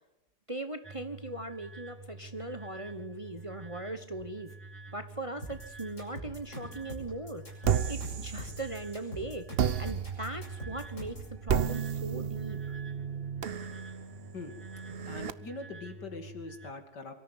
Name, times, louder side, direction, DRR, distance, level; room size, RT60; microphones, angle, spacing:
voice 1, 0.5-4.5 4.9-7.4 7.9-9.5 9.8-12.8, right 2 dB, 20° right, 8 dB, 1.2 m, -39 dB
sound 1, 0.8-16.7, right 3 dB, 5° left, 2.5 m, -49 dB
sound 2, 5.4-11.3, equal, 45° left, 8.0 m, -43 dB
sound 3, 7.6-9.0 9.6-15.3, right 8 dB, 50° right, 0.8 m, -33 dB
voice 2, 15.1-17.2, left 3 dB, 80° left, 7 dB, 3.1 m, -42 dB
23.5 x 13.5 x 8.2 m, 0.89 s
omnidirectional pair, 1.8 m